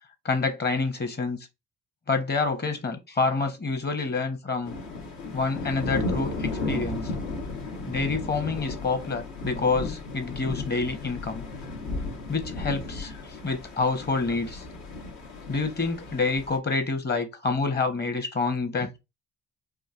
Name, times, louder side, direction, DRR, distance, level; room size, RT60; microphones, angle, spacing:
voice 1, 0.2-1.4 2.1-4.7 5.3-7.1 7.9-11.4 12.3-14.6 15.5-19.0, left 4 dB, 35° left, 0.9 m, -27 dB
sound 1, 4.7-16.6, left 3 dB, 75° left, 1.0 m, -34 dB
3.7 x 2.5 x 2.4 m
supercardioid pair, 55°, 30 cm